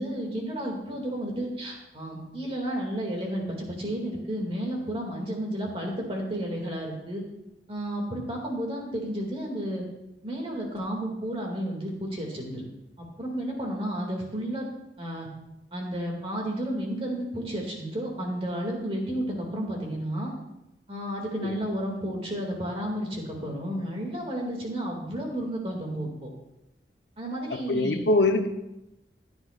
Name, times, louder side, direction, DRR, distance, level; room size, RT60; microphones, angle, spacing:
voice 1, 0.0-7.2 7.7-9.8 10.2-12.6 13.0-14.7 15.0-15.3 15.7-20.3 20.9-26.3 27.2-28.1, right 1 dB, 35° right, 0 dB, 2.2 m, -32 dB
voice 2, 27.5-28.5, left 2 dB, 75° left, 5 dB, 0.9 m, -23 dB
15.0 x 9.6 x 2.5 m, 0.91 s
head